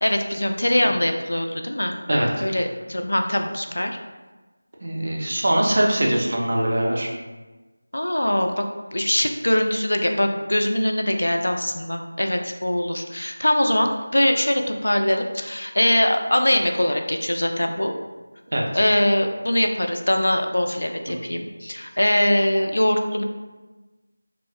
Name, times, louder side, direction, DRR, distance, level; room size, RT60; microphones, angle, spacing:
voice 1, 0.0-1.9 2.4-4.0 7.9-8.6 8.9-17.9 18.7-23.2, left 1 dB, 85° left, 4 dB, 0.3 m, -22 dB
voice 2, 4.8-7.1 18.5-18.7, right 1 dB, 40° right, -1 dB, 0.3 m, -22 dB
2.8 x 2.0 x 2.7 m, 1.2 s
figure-of-eight pair, 175°, 0 cm